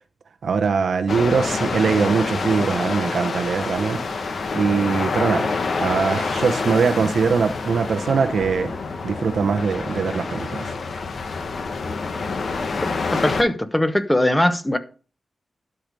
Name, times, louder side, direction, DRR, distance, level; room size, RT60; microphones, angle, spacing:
voice 1, 0.4-4.0 4.5-5.5 5.8-8.7 9.0-10.7, right 5 dB, 80° right, 0.8 m, -21 dB
sound 1, 1.1-13.4, left 4 dB, 70° left, 1.1 m, -27 dB
voice 2, 13.1-14.8, left 1 dB, 15° left, 1.0 m, -20 dB
12.0 x 4.9 x 5.3 m
wide cardioid pair, 80°, 0 cm